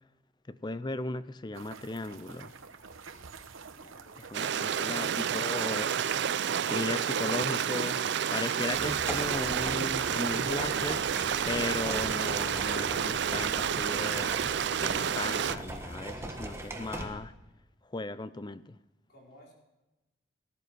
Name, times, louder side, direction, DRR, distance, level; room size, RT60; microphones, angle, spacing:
voice 1, 0.5-2.5 4.3-5.9 6.7-8.0 8.3-11.2 11.5-14.5 14.7-17.3 17.9-18.8, left 2 dB, 20° left, 14 dB, 0.5 m, -36 dB
sound 1, 1.5-13.8, right 6 dB, 80° right, 1.0 m, -47 dB
voice 2, 3.7-4.3 19.1-19.5, equal, 50° left, -2 dB, 4.7 m, -56 dB
Stream, 4.3-15.6, right 8 dB, 55° right, 0.4 m, -30 dB
sound 2, 8.7-17.1, right 1 dB, 15° right, 1.5 m, -40 dB
19.0 x 11.5 x 6.2 m, 1.0 s
head